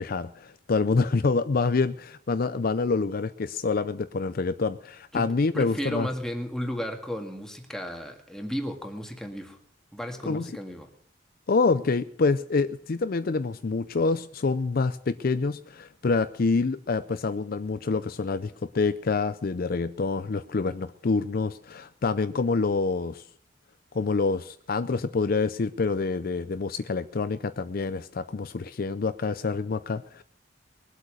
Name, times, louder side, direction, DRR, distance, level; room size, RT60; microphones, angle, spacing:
voice 1, 0.0-6.1 10.3-10.5 11.5-23.2 23.9-30.2, left 4 dB, 50° left, 12 dB, 0.5 m, -27 dB
voice 2, 5.5-9.6 9.9-10.9, equal, 5° left, 3 dB, 1.9 m, -34 dB
21.0 x 8.2 x 6.3 m, 0.63 s
head